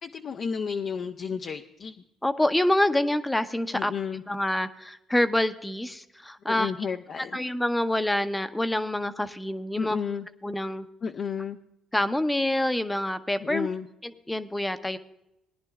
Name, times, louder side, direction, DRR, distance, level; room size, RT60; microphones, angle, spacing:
voice 1, 0.0-1.9 3.7-4.2 6.5-7.4 9.8-10.3 11.0-11.6 13.4-13.9, left 6 dB, 55° left, 4 dB, 0.6 m, -32 dB
voice 2, 2.2-3.9 4.3-6.7 7.3-10.0 10.4-10.9 11.9-13.7 14.0-15.0, left 1 dB, 10° left, 10 dB, 0.7 m, -26 dB
19.0 x 10.5 x 2.4 m, 0.85 s
supercardioid pair, 80°, 0 cm